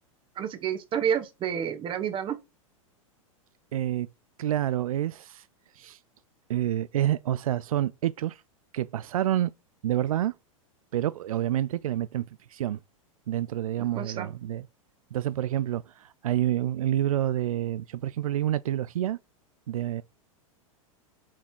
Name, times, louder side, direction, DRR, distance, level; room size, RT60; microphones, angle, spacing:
voice 1, 0.3-2.4 13.9-14.3, right 8 dB, 30° right, 1.4 m, -29 dB
voice 2, 3.7-4.1 4.4-5.5 5.7-6.0 6.5-8.4 8.7-9.5 9.8-10.3 10.9-12.2 12.5-12.8 13.3-14.7 15.1-19.2 19.7-20.0, right 12 dB, 85° right, 0.4 m, -28 dB
5.9 x 4.2 x 4.6 m
hypercardioid pair, 115°, 17 cm